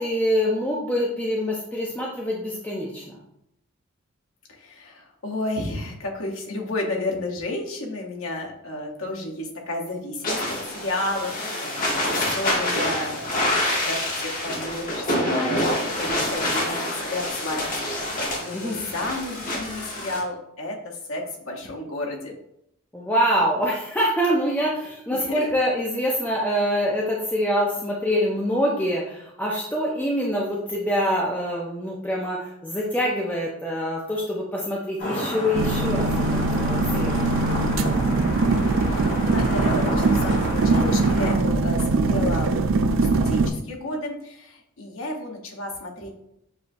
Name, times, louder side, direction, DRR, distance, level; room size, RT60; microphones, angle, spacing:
voice 1, 0.0-3.2 18.5-18.8 22.9-36.1 36.6-37.2, equal, 5° left, -3 dB, 0.4 m, -25 dB
voice 2, 4.5-22.3 25.1-25.4 38.3-42.5 42.9-46.1, left 2 dB, 75° left, 0 dB, 0.9 m, -32 dB
sound 1, 10.2-20.2, left 1 dB, 40° left, 1.0 m, -26 dB
sound 2, 35.0-41.3, equal, 60° left, 1.5 m, -31 dB
sound 3, 35.5-43.5, right 3 dB, 65° right, 0.3 m, -22 dB
6.7 x 2.6 x 2.5 m, 0.79 s
head